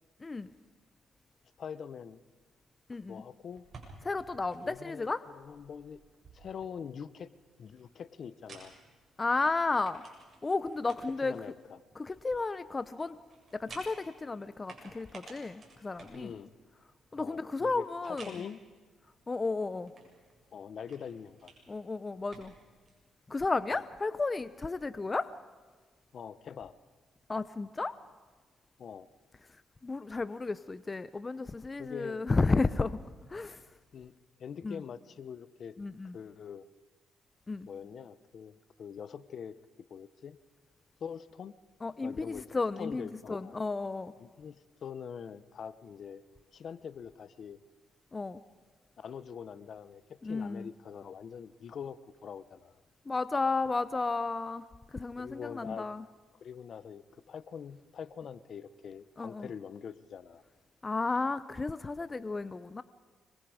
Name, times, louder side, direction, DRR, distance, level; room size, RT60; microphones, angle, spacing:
voice 1, 1.6-2.2 3.1-3.7 4.6-6.0 6.3-7.3 7.6-8.7 11.2-11.8 16.1-16.5 17.2-18.6 20.5-21.5 23.7-23.8 26.1-26.7 28.8-29.1 31.8-32.3 33.9-34.1 34.4-35.8 36.1-36.7 37.7-39.5 39.9-40.4 41.0-41.5 42.0-43.6 44.2-46.2 46.5-47.6 49.0-52.8 55.2-55.9 56.4-60.4, left 7 dB, 55° left, 15 dB, 0.9 m, -44 dB
voice 2, 2.9-3.2 4.0-5.2 9.2-10.0 10.4-11.4 12.0-13.2 13.5-16.3 17.1-18.4 19.3-19.9 21.7-22.5 23.3-25.3 27.3-27.9 29.8-33.0 33.3-33.7 34.6-34.8 35.8-36.2 37.5-37.7 41.8-44.1 48.1-48.4 50.2-50.7 53.1-56.0 59.2-59.5 60.8-62.8, left 3 dB, 25° left, 14 dB, 0.7 m, -33 dB
sound 1, 3.5-23.0, right 3 dB, 45° right, 7.2 m, -56 dB
25.5 x 23.5 x 5.0 m, 1.4 s
cardioid pair, 90°, 0 cm